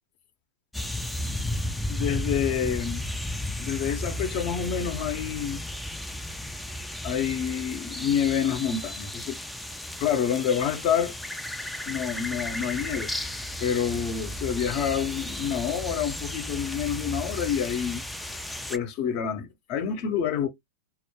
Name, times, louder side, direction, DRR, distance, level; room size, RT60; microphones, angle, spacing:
sound 1, 0.7-18.8, left 1 dB, 5° left, 0.3 m, -34 dB
voice 1, 1.9-3.0 3.6-5.6 7.0-9.4 10.0-11.1 11.9-13.1 13.6-18.0 18.7-20.5, left 8 dB, 50° left, 0.7 m, -28 dB
2.1 x 2.0 x 2.9 m
hypercardioid pair, 115°, 0 cm